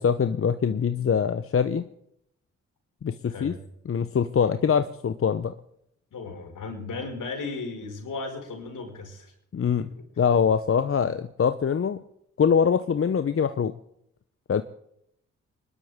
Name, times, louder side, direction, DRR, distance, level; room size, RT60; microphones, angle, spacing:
voice 1, 0.0-1.8 3.0-3.5 3.9-5.5 9.5-9.9 10.2-12.0 12.4-13.7 14.5-14.6, left 7 dB, 40° left, 11 dB, 0.8 m, -23 dB
voice 2, 3.3-3.6 6.1-9.3 9.8-10.0, left 3 dB, 65° left, 2 dB, 5.1 m, -36 dB
23.0 x 12.0 x 3.7 m, 0.74 s
hypercardioid pair, 45°, 34 cm